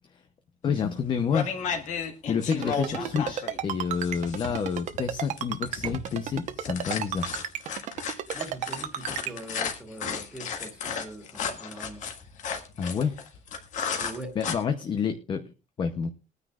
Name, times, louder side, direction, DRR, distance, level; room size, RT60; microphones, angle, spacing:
voice 1, 0.6-1.6 2.3-7.3 12.8-13.2 14.4-15.4 15.8-16.1, left 6 dB, 30° left, 7 dB, 0.7 m, -29 dB
sound 1, 0.7-1.0 1.3-14.5, left 6 dB, 55° left, 1.7 m, -34 dB
voice 2, 2.5-3.1 8.3-12.1 14.0-14.4, right 1 dB, 5° right, 3 dB, 2.2 m, -41 dB
Ringtone, 2.5-9.3, right 10 dB, 55° right, 0.9 m, -32 dB
sound 2, 2.6-4.3 4.8-7.0, right 7 dB, 30° right, 0.5 m, -46 dB
21.5 x 9.6 x 2.4 m, 0.31 s
cardioid pair, 180°, 15 cm